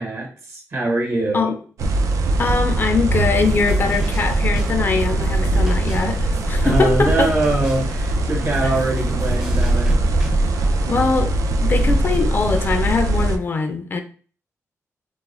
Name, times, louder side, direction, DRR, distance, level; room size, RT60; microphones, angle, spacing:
voice 1, 0.0-1.5 6.6-10.0, right 2 dB, 50° right, 1.0 m, -23 dB
sound 1, 1.8-13.4, right 2 dB, 80° right, 0.3 m, -21 dB
voice 2, 2.4-7.3 8.6-8.7 10.9-14.0, left 4 dB, 40° left, 0.3 m, -22 dB
sound 2, 2.8-11.2, left 2 dB, 80° left, 0.7 m, -36 dB
sound 3, 3.2-10.3, equal, 10° right, 0.5 m, -40 dB
2.3 x 2.1 x 3.1 m
wide cardioid pair, 110°, 5 cm